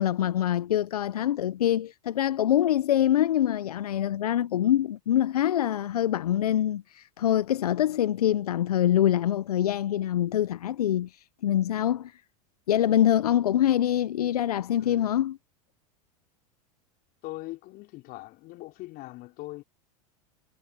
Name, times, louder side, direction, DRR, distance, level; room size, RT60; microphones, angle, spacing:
voice 1, 0.0-12.2 12.7-15.4, left 11 dB, 85° left, 0.6 m, -25 dB
voice 2, 14.8-15.1 17.2-19.6, left 19 dB, 50° left, 5.0 m, -41 dB
hypercardioid pair, 95°, 19 cm